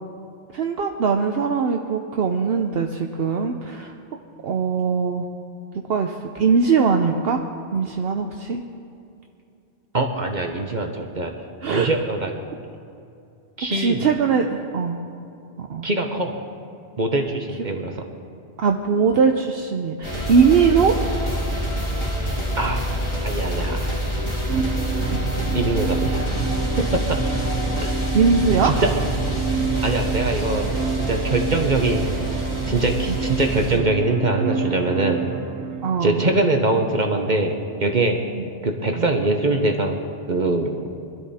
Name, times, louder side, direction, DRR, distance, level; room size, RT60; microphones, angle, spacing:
voice 1, 0.5-3.9 4.4-5.3 5.9-7.4 7.7-8.6 11.6-11.9 13.7-15.0 15.6-15.9 18.6-21.0 25.1-25.3 28.1-28.7 33.7-33.8 35.8-36.2 38.3-38.7 39.0-39.1, right 5 dB, 65° right, 4 dB, 0.9 m, -21 dB
voice 2, 9.9-11.4 11.7-12.3 13.6-14.0 15.8-16.3 17.0-18.0 22.6-22.8 23.2-24.0 25.5-26.5 26.8-27.2 27.8-27.9 28.6-28.9 29.8-30.7 31.0-32.1 32.7-35.2 36.0-38.2 38.6-40.0 40.3-40.8, right 2 dB, 45° right, 3 dB, 1.0 m, -23 dB
sound 1, 20.0-33.8, equal, 25° left, 2.6 m, -26 dB
sound 2, 24.5-36.4, right 7 dB, 85° right, 1.1 m, -29 dB
21.5 x 12.5 x 4.3 m, 2.5 s
omnidirectional pair, 1.1 m